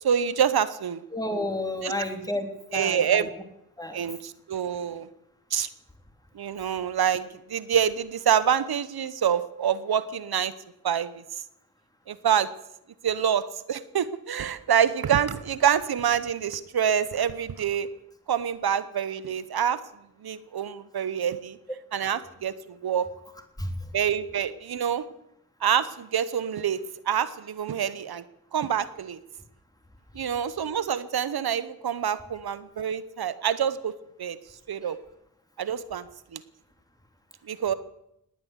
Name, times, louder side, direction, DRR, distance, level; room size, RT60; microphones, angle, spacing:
voice 1, 0.0-1.0 1.8-1.9 2.7-3.3 3.9-5.1 5.5-5.7 6.3-10.5 10.8-11.2 12.1-12.5 13.0-17.9 18.3-19.8 20.2-21.6 21.9-23.1 23.9-25.0 25.6-26.8 27.1-28.2 28.5-29.2 30.1-33.9 34.2-34.4 34.7-35.0 35.6-36.4 37.4-37.7, right 8 dB, 80° right, 15 dB, 1.0 m, -26 dB
voice 2, 1.1-3.3 3.8-4.0 23.6-23.7 34.8-34.9, left 1 dB, 10° left, 5 dB, 3.2 m, -31 dB
19.5 x 8.9 x 8.1 m, 0.82 s
cardioid pair, 40°, 37 cm